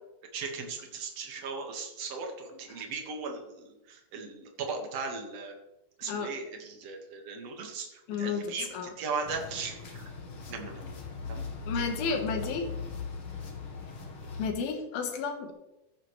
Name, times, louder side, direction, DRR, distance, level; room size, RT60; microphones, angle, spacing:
voice 1, 0.3-5.5 6.0-10.0 10.5-10.9 11.3-11.4 11.7-12.2, right 4 dB, 50° right, 3 dB, 2.3 m, -38 dB
voice 2, 8.1-8.9 11.7-12.7 14.4-15.5, left 5 dB, 80° left, 5 dB, 3.1 m, -32 dB
sound 1, 9.2-14.5, left 4 dB, 55° left, 1.6 m, -39 dB
14.5 x 9.3 x 3.2 m, 0.95 s
omnidirectional pair, 4.3 m